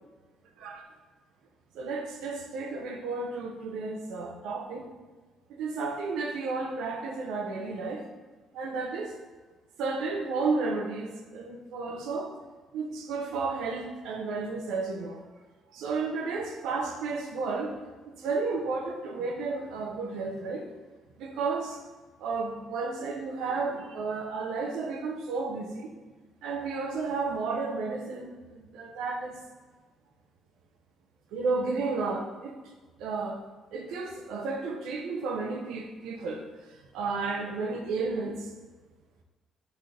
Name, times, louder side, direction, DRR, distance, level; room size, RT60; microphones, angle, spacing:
voice 1, 1.7-4.9 5.6-8.1 8.5-9.1 9.8-12.3 12.7-15.2 15.7-17.8 18.2-20.7 21.2-21.8 22.2-25.9 26.4-29.3 31.3-32.5 33.0-33.4 33.7-36.4 36.9-38.4, right 4 dB, 85° right, 3 dB, 0.9 m, -32 dB
8.2 x 4.0 x 3.4 m, 1.3 s
cardioid pair, 180°, 0 cm